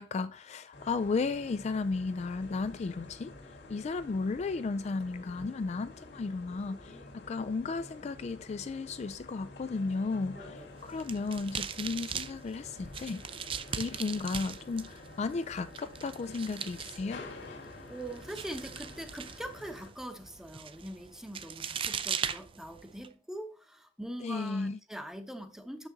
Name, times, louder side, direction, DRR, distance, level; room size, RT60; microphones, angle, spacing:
voice 1, 0.0-3.3 3.7-13.2 13.8-17.2 24.2-24.8, left 4 dB, 40° left, 0.3 m, -34 dB
sound 1, 0.7-19.9, left 2 dB, 65° left, 1.9 m, -49 dB
voice 2, 10.3-10.7 17.9-25.9, right 1 dB, 5° right, 0.8 m, -43 dB
sound 2, 10.7-23.1, right 7 dB, 30° right, 0.4 m, -40 dB
6.9 x 6.0 x 3.9 m
head